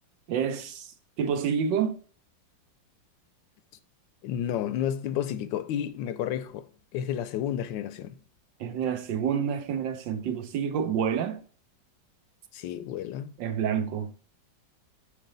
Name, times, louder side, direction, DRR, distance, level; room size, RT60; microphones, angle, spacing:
voice 1, 0.3-0.9 1.2-2.0 8.6-11.4 13.4-14.1, right 7 dB, 75° right, 1.4 m, -28 dB
voice 2, 4.2-8.2 12.5-13.3, left 10 dB, 80° left, 1.3 m, -31 dB
6.1 x 4.9 x 3.8 m
omnidirectional pair, 2.0 m